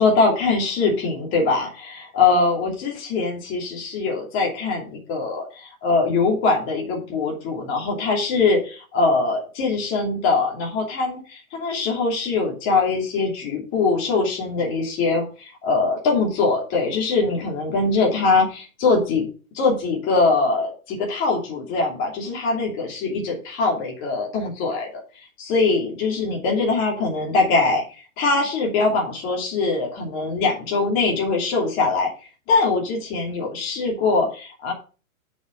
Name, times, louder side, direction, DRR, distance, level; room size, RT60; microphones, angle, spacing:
voice 1, 0.0-19.3 19.5-24.9 25.4-27.8 28.2-32.1 32.5-34.7, left 3 dB, 30° left, -1 dB, 2.8 m, -22 dB
6.7 x 6.3 x 6.5 m, 0.36 s
hypercardioid pair, 150°, 42 cm